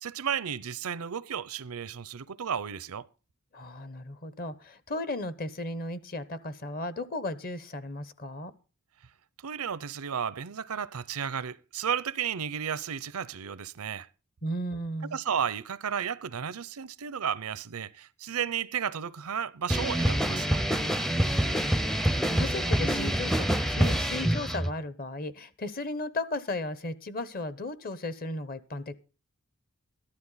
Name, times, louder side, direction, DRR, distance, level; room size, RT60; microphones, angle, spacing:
voice 1, 0.0-3.1 9.4-14.1 15.1-20.6, right 8 dB, 90° right, 0.6 m, -33 dB
voice 2, 3.5-8.5 14.4-15.2 22.0-29.0, left 2 dB, 40° left, 1.0 m, -35 dB
sound 1, 19.7-24.7, right 1 dB, ahead, 0.5 m, -26 dB
13.5 x 12.0 x 4.0 m
head